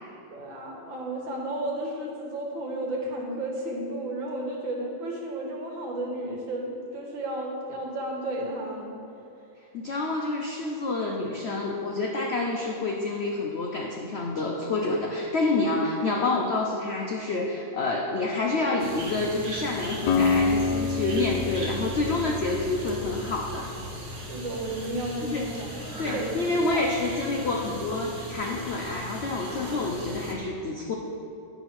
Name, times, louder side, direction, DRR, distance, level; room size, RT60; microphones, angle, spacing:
voice 1, 0.3-9.0 24.3-26.3 26.7-26.8, right 1 dB, 90° right, -1 dB, 2.1 m, -33 dB
voice 2, 9.7-23.7 25.3-25.5 26.0-30.9, left 2 dB, 90° left, 0 dB, 0.5 m, -28 dB
sound 1, 18.8-30.3, equal, 35° right, 1.0 m, -38 dB
Acoustic guitar, 20.1-24.2, left 4 dB, 70° left, 1.2 m, -28 dB
10.5 x 4.0 x 6.0 m, 2.8 s
omnidirectional pair, 2.0 m